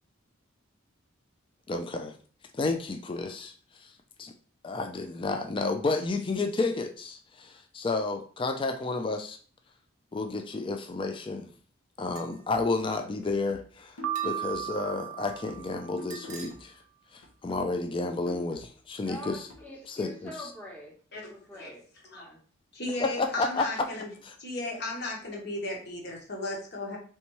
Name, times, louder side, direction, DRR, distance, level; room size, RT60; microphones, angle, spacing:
voice 1, 1.7-2.1 2.5-3.5 4.6-9.4 10.1-11.5 12.0-14.0 14.2-16.7 17.1-19.4 19.9-20.3 23.0-23.7 24.2-24.3, left 3 dB, 25° left, 5 dB, 0.3 m, -31 dB
sound 1, 12.2-12.5 14.1-14.7 16.1-16.5, right 6 dB, 35° right, 0.7 m, -45 dB
sound 2, 13.2-16.9 17.2-20.5, left 3 dB, 85° left, 1.0 m, -49 dB
Piano, 14.0-16.2, right 12 dB, 75° right, 0.4 m, -35 dB
voice 2, 19.0-22.4 23.1-23.4, left 1 dB, 10° left, -1 dB, 0.9 m, -45 dB
voice 3, 21.1-21.7 22.1-22.3 22.7-24.1 24.4-27.0, left 2 dB, 50° left, -1 dB, 1.2 m, -35 dB
4.2 x 3.4 x 3.0 m, 0.42 s
head